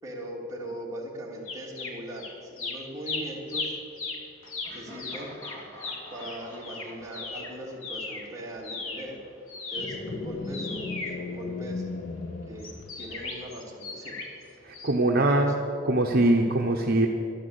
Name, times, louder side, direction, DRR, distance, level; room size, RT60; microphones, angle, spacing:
voice 1, 0.0-3.8 4.7-5.3 6.1-9.2 9.7-11.8 12.5-14.2 15.3-15.6, right 1 dB, 15° right, -4 dB, 3.0 m, -40 dB
sound 1, 1.5-2.3 2.6-8.3 8.6-11.9 12.6-14.4 14.7-14.9, left 3 dB, 85° left, 2.2 m, -37 dB
Laughter, 4.6-8.5, equal, 15° left, 2.2 m, -48 dB
sound 2, 9.8-13.4, left 3 dB, 40° left, 0.7 m, -36 dB
voice 2, 14.6-15.5 15.8-17.1, right 1 dB, 50° right, 1 dB, 1.0 m, -22 dB
12.0 x 12.0 x 8.3 m, 2.7 s
head